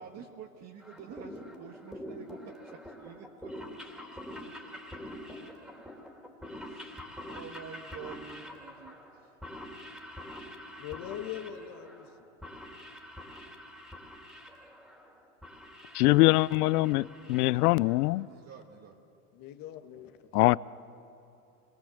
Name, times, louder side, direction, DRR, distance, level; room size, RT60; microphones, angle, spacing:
voice 1, 0.0-2.4 2.6-3.5 3.8-4.0 4.3-4.5 6.6-9.4 18.3-19.0, right 7 dB, 35° right, 2 dB, 1.6 m, -48 dB
sound 1, 0.8-18.2, left 1 dB, ahead, 3.2 m, -46 dB
voice 2, 10.8-12.1 19.3-20.2, left 11 dB, 45° left, 7 dB, 1.7 m, -41 dB
voice 3, 15.9-18.3 20.3-20.6, left 20 dB, 70° left, 22 dB, 0.6 m, -23 dB
26.0 x 21.5 x 7.8 m, 2.9 s
supercardioid pair, 125°, 47 cm